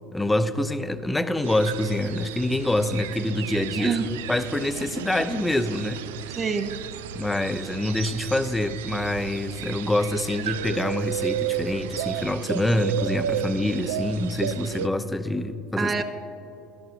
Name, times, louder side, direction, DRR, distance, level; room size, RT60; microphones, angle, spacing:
voice 1, 0.1-4.0 4.3-6.4 7.1-16.0, left 1 dB, 10° left, 11 dB, 0.5 m, -26 dB
sound 1, 1.4-14.9, right 10 dB, 80° right, 0.3 m, -33 dB
voice 2, 3.8-4.2 6.4-6.8 15.8-16.0, right 5 dB, 30° right, 7 dB, 0.6 m, -26 dB
14.0 x 12.5 x 2.6 m, 2.8 s
hypercardioid pair, 75°, 0 cm